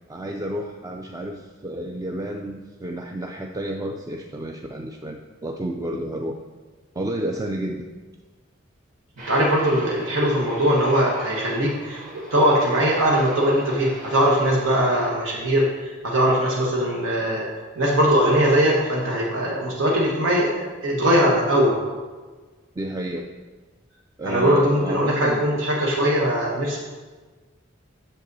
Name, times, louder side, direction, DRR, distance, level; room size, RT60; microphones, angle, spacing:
voice 1, 0.1-6.4 6.9-7.9 22.8-23.3 24.2-25.4, right 1 dB, 20° right, 3 dB, 0.4 m, -31 dB
Aircraft, 9.2-14.7, right 1 dB, 45° right, 2.2 m, -39 dB
voice 2, 9.3-12.0 12.3-17.5 17.8-21.8 24.2-26.8, equal, 90° right, -3 dB, 1.3 m, -20 dB
8.0 x 6.7 x 4.0 m, 1.4 s
head